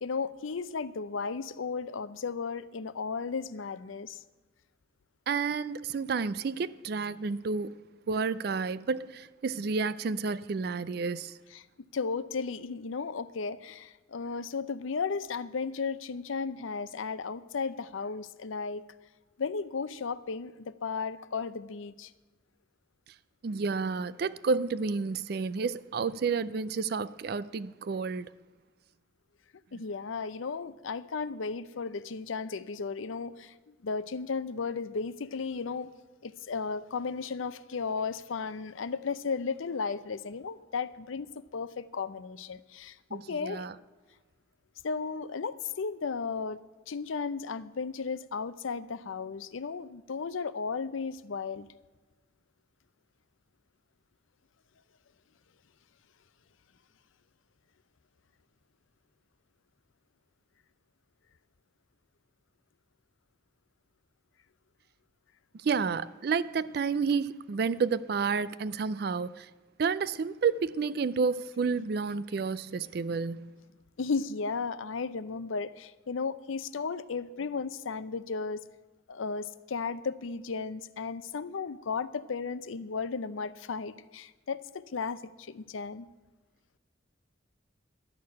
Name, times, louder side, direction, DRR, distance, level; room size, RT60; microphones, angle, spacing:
voice 1, 0.0-4.2 11.5-11.6 11.9-18.8 19.4-22.1 29.7-35.9 36.2-43.7 44.8-46.6 46.9-51.7 71.6-71.8 72.1-73.1 74.0-78.6 79.1-86.1, left 5 dB, 85° left, 0.6 m, -35 dB
voice 2, 5.3-7.8 8.1-11.4 23.4-28.3 43.1-43.7 65.5-69.5 69.8-73.5, right 5 dB, 50° right, 0.4 m, -30 dB
12.0 x 6.6 x 9.5 m
head